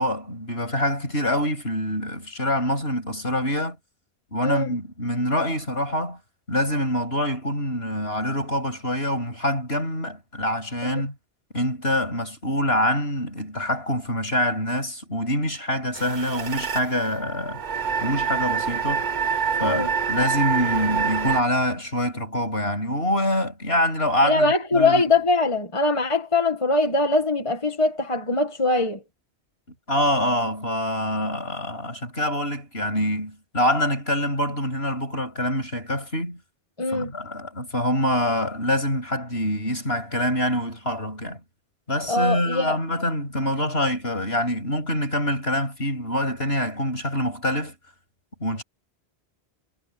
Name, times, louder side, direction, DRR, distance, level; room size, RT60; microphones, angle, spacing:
voice 1, 0.0-3.8 4.3-6.2 6.5-11.1 11.5-17.6 18.0-19.1 19.6-25.0 29.9-36.4 36.9-41.4 41.9-47.7 48.4-48.6, left 1 dB, 65° left, 7.6 m, -25 dB
sound 1, 15.9-21.4, right 6 dB, 45° right, 1.0 m, -26 dB
voice 2, 19.6-19.9 24.2-29.0 36.8-37.1 42.1-42.8, left 2 dB, 30° left, 1.8 m, -22 dB
omnidirectional pair, 1.1 m